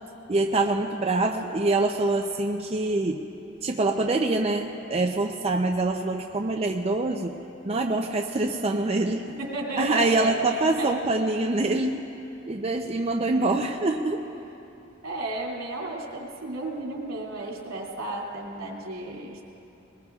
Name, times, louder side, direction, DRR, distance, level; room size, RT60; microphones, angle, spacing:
voice 1, 0.3-3.2 3.6-7.3 7.6-9.2 9.8-12.0 12.5-14.2, right 2 dB, 30° right, 2 dB, 0.5 m, -25 dB
voice 2, 9.3-11.0 15.0-19.4, right 2 dB, 85° right, -2 dB, 2.7 m, -33 dB
21.5 x 20.0 x 2.4 m, 2.8 s
head